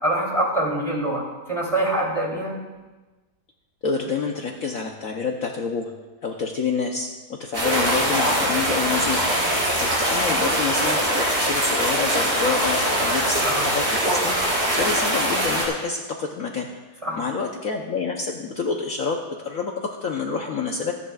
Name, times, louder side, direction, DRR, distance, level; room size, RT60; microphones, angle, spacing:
voice 1, 0.0-1.2 1.5-2.5 13.4-13.7 17.0-17.2, right 1 dB, 20° right, -3 dB, 3.0 m, -24 dB
voice 2, 3.8-5.9 6.2-9.2 9.8-13.4 13.7-14.4 14.8-16.7 17.1-20.9, left 5 dB, 55° left, 1 dB, 1.2 m, -28 dB
sound 1, 7.5-15.6, equal, 50° right, 4.7 m, -22 dB
26.0 x 10.0 x 2.4 m, 1.2 s
omnidirectional pair, 1.9 m